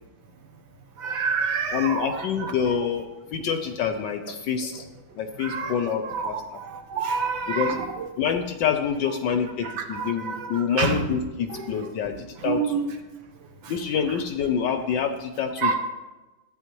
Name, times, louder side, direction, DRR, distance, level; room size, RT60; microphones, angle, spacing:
voice 1, 1.0-2.5 5.4-6.3 6.6-8.1 9.6-11.0 11.5-11.6 12.4-12.8 15.6-15.8, right 5 dB, 70° right, 4 dB, 1.7 m, -28 dB
voice 2, 1.7-3.0 3.3-4.8 5.1-6.6 7.5-7.7 8.2-12.7 13.7-15.7, left 7 dB, 75° left, 7 dB, 1.1 m, -27 dB
13.0 x 9.0 x 3.0 m, 1.2 s
omnidirectional pair, 2.4 m